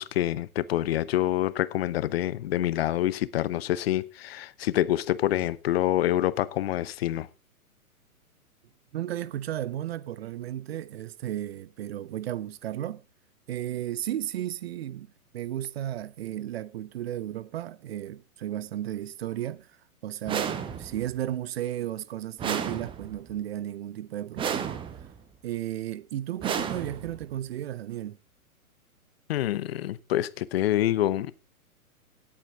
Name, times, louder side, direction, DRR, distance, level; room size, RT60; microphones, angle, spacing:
voice 1, 0.0-7.3 29.3-31.3, left 13 dB, 45° left, 0.8 m, -26 dB
voice 2, 8.9-13.0 13.5-19.8 20.0-24.8 25.4-28.2, right 12 dB, 45° right, 0.7 m, -34 dB
sound 1, 20.3-21.1 22.4-23.3 24.4-25.2 26.4-27.3, right 7 dB, 10° right, 0.8 m, -32 dB
17.5 x 8.6 x 3.6 m
figure-of-eight pair, 115°, 44 cm